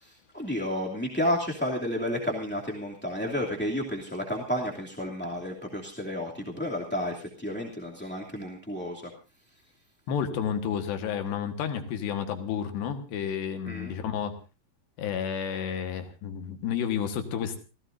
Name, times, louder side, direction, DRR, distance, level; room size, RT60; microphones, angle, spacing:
voice 1, 0.0-9.1 13.7-13.9, left 1 dB, 5° left, -2 dB, 1.2 m, -31 dB
voice 2, 10.1-14.3 15.0-17.6, left 8 dB, 75° left, 7 dB, 3.6 m, -31 dB
27.5 x 16.0 x 2.6 m, 0.32 s
omnidirectional pair, 5.0 m